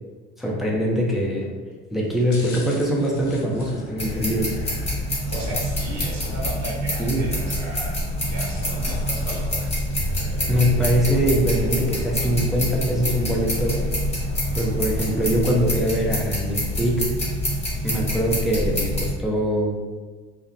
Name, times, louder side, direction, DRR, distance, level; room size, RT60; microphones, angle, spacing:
voice 1, 0.4-1.5 1.9-4.6 7.0-7.3 10.5-13.8 14.6-17.1 17.8-19.7, equal, ahead, -3 dB, 0.5 m, -23 dB
sound 1, 1.1-1.4 2.0-4.6 5.3-6.7 7.1-7.2 8.0-10.2 10.6-10.7, left 2 dB, 90° left, 0.6 m, -44 dB
sound 2, 3.0-15.4, equal, 40° left, 0.7 m, -42 dB
sound 3, 4.0-19.1, equal, 20° left, 1.0 m, -26 dB
voice 2, 5.3-9.9, right 1 dB, 55° right, -3 dB, 0.9 m, -35 dB
2.4 x 2.0 x 2.6 m, 1.4 s
hypercardioid pair, 65°, 33 cm